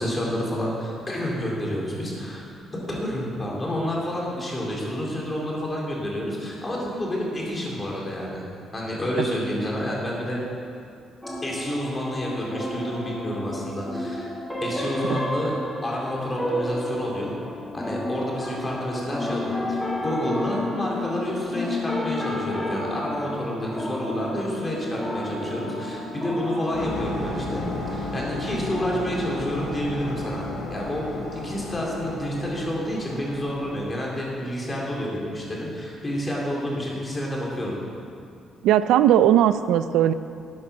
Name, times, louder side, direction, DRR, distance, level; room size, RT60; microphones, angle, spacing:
voice 1, 0.0-2.5 2.9-8.4 8.7-10.4 11.4-14.3 14.6-15.5 15.8-17.4 17.7-27.6 27.9-37.8, equal, 25° left, -3 dB, 3.7 m, -29 dB
sound 1, 11.2-26.9, left 1 dB, 5° left, 1.8 m, -31 dB
sound 2, 26.7-34.3, left 2 dB, 75° left, 2.5 m, -33 dB
voice 2, 38.6-40.1, right 11 dB, 90° right, 13 dB, 0.4 m, -18 dB
12.5 x 8.5 x 6.3 m, 2.4 s
cardioid pair, 90°, 0 cm